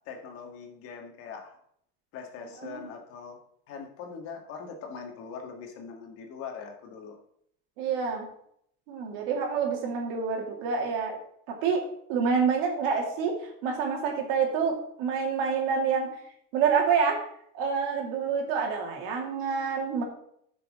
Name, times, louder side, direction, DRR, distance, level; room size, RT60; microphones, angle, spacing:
voice 1, 0.1-1.6 2.1-3.4 3.7-7.2, left 5 dB, 50° left, 3 dB, 1.8 m, -41 dB
voice 2, 7.8-8.2 8.9-11.2 11.5-11.8 12.1-16.2 16.5-17.2 17.5-20.0, right 6 dB, 80° right, 1 dB, 2.5 m, -27 dB
13.5 x 6.1 x 3.7 m, 0.70 s
cardioid pair, 145°, 29 cm